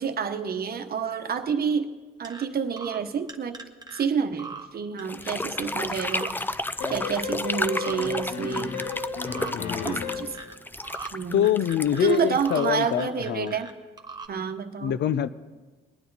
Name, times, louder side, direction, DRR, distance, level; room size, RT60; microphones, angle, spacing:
voice 1, 0.0-1.9 2.2-3.6 3.9-6.5 6.9-8.8 9.8-10.3 11.1-11.5 12.0-13.7 14.3-15.0, right 6 dB, 50° right, 7 dB, 1.1 m, -28 dB
sound 1, 2.2-2.4 2.8-3.0 3.3-4.0 4.4-4.7 5.0-5.7 6.0-6.3 6.6-7.3 7.7-7.9 8.3-8.9 9.3-9.5 9.9-10.5 10.8-11.1 11.4-12.7 12.9-13.7 14.0-14.3, right 4 dB, 20° right, 1.1 m, -40 dB
sound 2, 5.0-13.1, left 2 dB, 10° left, 0.4 m, -32 dB
sound 3, 6.8-10.4, left 5 dB, 90° left, 1.4 m, -33 dB
voice 2, 9.2-10.0 11.3-13.5 14.8-15.3, left 10 dB, 60° left, 14 dB, 0.6 m, -25 dB
22.0 x 9.3 x 4.0 m, 1.3 s
cardioid pair, 90°, 20 cm